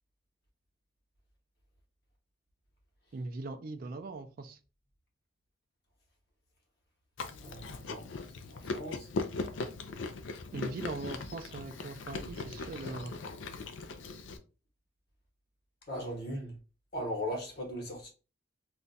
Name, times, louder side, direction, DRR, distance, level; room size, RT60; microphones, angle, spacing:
voice 1, 3.1-4.6 10.5-13.2, right 3 dB, 50° right, 0.3 m, -40 dB
Chewing mastication, 7.2-14.4, left 3 dB, 75° left, 0.4 m, -39 dB
voice 2, 7.4-8.0 8.3-9.1 15.9-16.6 16.9-18.1, equal, 55° left, 1.0 m, -38 dB
2.4 x 2.2 x 3.9 m
head